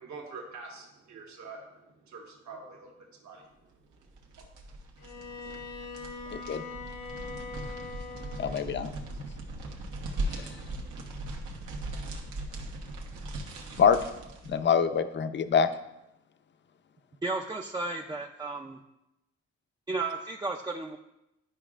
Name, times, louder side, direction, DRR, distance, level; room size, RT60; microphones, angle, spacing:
voice 1, 0.0-3.5, right 4 dB, 65° right, -1 dB, 1.4 m, -45 dB
sound 1, 3.9-14.6, right 1 dB, 85° right, 1.1 m, -39 dB
Bowed string instrument, 5.0-8.7, left 4 dB, 75° left, 1.1 m, -42 dB
voice 2, 6.3-6.6 8.4-8.9 10.3-10.4 13.8-14.0 14.5-15.7, left 7 dB, 40° left, 10 dB, 0.5 m, -25 dB
voice 3, 17.2-18.8 19.9-21.0, right 3 dB, 15° right, 2 dB, 0.4 m, -33 dB
11.0 x 4.9 x 2.4 m, 0.90 s
cardioid pair, 90°, 30 cm